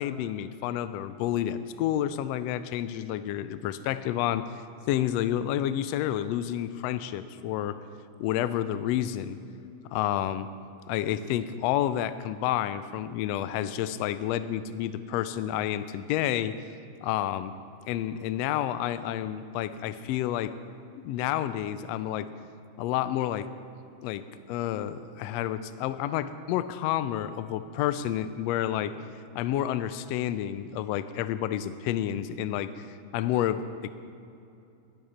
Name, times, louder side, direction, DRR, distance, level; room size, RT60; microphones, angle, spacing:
voice 1, 0.0-4.4 4.9-7.8 8.2-9.4 9.9-10.5 10.9-16.5 17.0-17.5 17.9-20.5 21.0-22.3 22.8-23.5 24.0-24.2 24.5-28.9 29.3-32.9 33.1-33.9, left 11 dB, 80° left, 13 dB, 1.5 m, -29 dB
12.0 x 12.0 x 4.3 m, 2.7 s
omnidirectional pair, 3.3 m